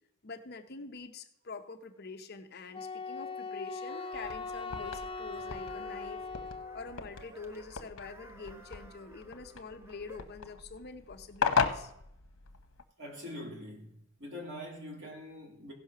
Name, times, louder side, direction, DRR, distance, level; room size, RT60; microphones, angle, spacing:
voice 1, 0.2-6.2 6.7-11.9, left 4 dB, 50° left, 0.7 m, -45 dB
Wind instrument woodwind instrument, 2.7-7.0, left 4 dB, 25° left, 0.4 m, -40 dB
sound 1, 3.9-10.4, equal, 10° right, 0.7 m, -55 dB
sound 2, 4.1-12.8, left 5 dB, 90° left, 0.9 m, -37 dB
voice 2, 13.0-15.7, left 1 dB, 55° right, 2.8 m, -44 dB
16.0 x 5.6 x 5.9 m
head